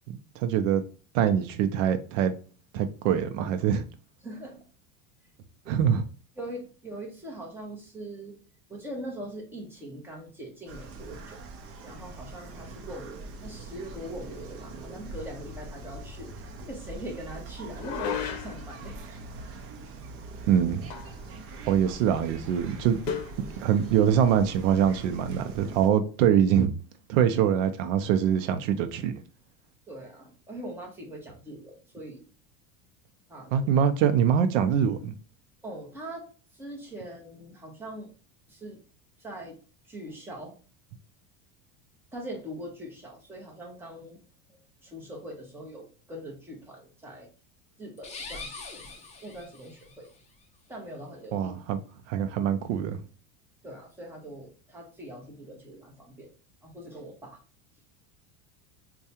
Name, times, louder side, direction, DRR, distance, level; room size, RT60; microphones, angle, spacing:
voice 1, 0.4-0.8 1.1-2.3 2.7-3.8 5.7-6.0 20.5-20.9 21.7-23.0 23.6-26.7 27.1-29.1 33.5-35.1 51.3-51.8 52.1-53.0, right 8 dB, 90° right, 0.6 m, -24 dB
voice 2, 4.2-4.6 5.6-5.8 6.4-8.4 8.7-11.4 11.8-19.0 29.9-32.3 33.3-33.7 35.6-36.3 36.5-38.1 38.5-38.8 39.2-39.6 39.8-40.6 42.1-44.2 44.5-47.3 47.8-48.9 49.2-50.1 50.7-51.5 53.6-56.3 56.6-57.4, right 1 dB, 5° right, 0.9 m, -42 dB
sound 1, 10.7-25.9, right 2 dB, 40° right, 0.7 m, -43 dB
sound 2, 17.7-18.7 20.9-21.3 21.5-21.6 23.1-23.4, left 8 dB, 60° left, 0.7 m, -34 dB
sound 3, 48.0-50.0, left 3 dB, 20° left, 0.6 m, -42 dB
4.5 x 2.3 x 2.7 m
supercardioid pair, 145°, 37 cm